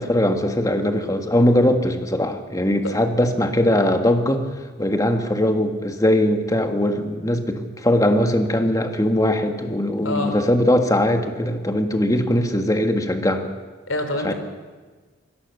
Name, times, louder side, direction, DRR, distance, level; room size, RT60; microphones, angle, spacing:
voice 1, 0.0-4.5 4.8-13.5 14.2-14.3, left 1 dB, 20° left, 6 dB, 1.7 m, -20 dB
voice 2, 10.0-10.4 13.9-14.3, left 2 dB, 85° left, 6 dB, 3.6 m, -25 dB
22.5 x 18.0 x 6.7 m, 1.4 s
head